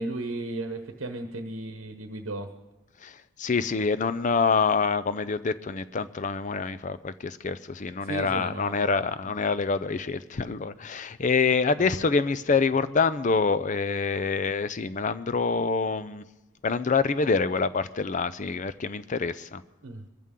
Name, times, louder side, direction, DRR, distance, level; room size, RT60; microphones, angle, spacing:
voice 1, 0.0-2.5 8.0-9.0 11.8-12.1 19.8-20.1, right 2 dB, 80° right, 5 dB, 1.0 m, -35 dB
voice 2, 3.0-16.2 16.6-19.6, left 4 dB, 35° left, 14 dB, 0.5 m, -26 dB
23.5 x 14.0 x 3.7 m, 1.0 s
head